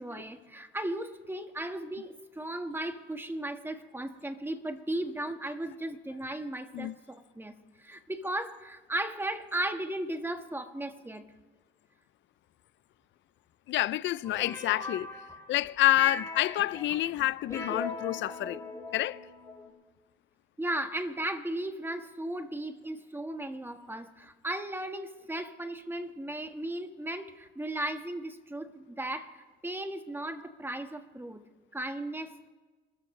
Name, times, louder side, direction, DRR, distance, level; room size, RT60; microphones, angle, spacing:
voice 1, 0.0-7.5 7.8-11.2 20.6-31.4 31.7-32.5, right 1 dB, 10° right, 1.5 m, -36 dB
voice 2, 13.7-15.1 15.5-18.6 18.9-19.2, left 15 dB, 70° left, 0.4 m, -28 dB
sound 1, 14.2-15.7 16.0-19.7, left 3 dB, 15° left, 3.4 m, -39 dB
28.5 x 13.5 x 3.2 m
cardioid pair, 90°, 20 cm